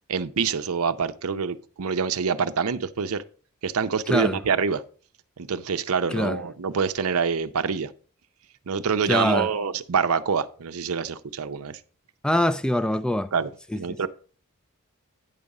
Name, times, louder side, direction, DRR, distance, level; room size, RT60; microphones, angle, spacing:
voice 1, 0.1-3.2 3.6-4.8 5.4-7.9 8.7-11.8 13.3-14.1, right 6 dB, 70° right, 0.6 m, -26 dB
voice 2, 9.1-9.5 12.2-13.3, left 1 dB, 5° left, 0.3 m, -23 dB
9.7 x 5.4 x 4.8 m
head